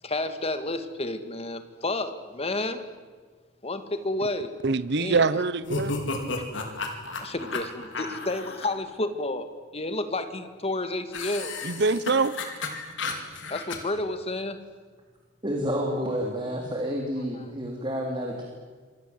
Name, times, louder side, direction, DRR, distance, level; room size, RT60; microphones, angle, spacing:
voice 1, 0.0-2.9 3.6-4.5 5.0-5.3 6.3-6.4 7.2-11.5 13.5-14.6 17.3-17.5, left 2 dB, 30° left, 9 dB, 2.2 m, -31 dB
voice 2, 4.6-6.0 11.6-12.3, right 4 dB, 60° right, 15 dB, 1.1 m, -24 dB
sound 1, 5.6-8.7 11.1-13.8, left 3 dB, 70° left, 4.4 m, -33 dB
voice 3, 15.4-18.4, equal, 25° right, 0 dB, 3.5 m, -29 dB
28.0 x 24.5 x 8.1 m, 1.5 s
head